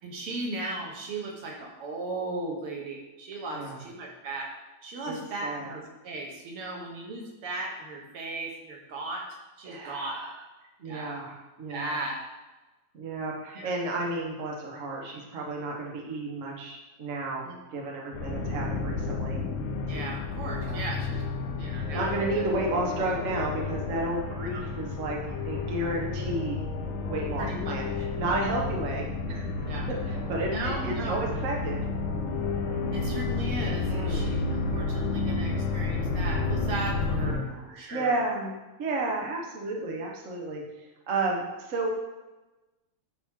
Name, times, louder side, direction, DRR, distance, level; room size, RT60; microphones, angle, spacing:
voice 1, 0.0-4.5 4.8-9.2 9.6-10.2 10.9-11.2 11.7-12.2 13.6-13.7 17.5-17.8 19.9-21.2 21.6-22.1 24.5-24.6 27.4-27.8 29.6-29.9 30.5-31.2 32.9-38.2, right 2 dB, 60° right, 0 dB, 1.7 m, -36 dB
voice 2, 5.1-5.7 9.6-10.4 10.8-12.0 12.9-19.4 20.6-20.8 21.9-26.6 27.0-29.5 29.9-31.8 33.9-34.3 37.1-38.5 38.8-41.9, right 2 dB, 80° right, -1 dB, 0.7 m, -32 dB
sound 1, 18.1-37.3, left 3 dB, 75° left, 1.2 m, -31 dB
10.5 x 4.6 x 3.7 m, 1.1 s
omnidirectional pair, 3.4 m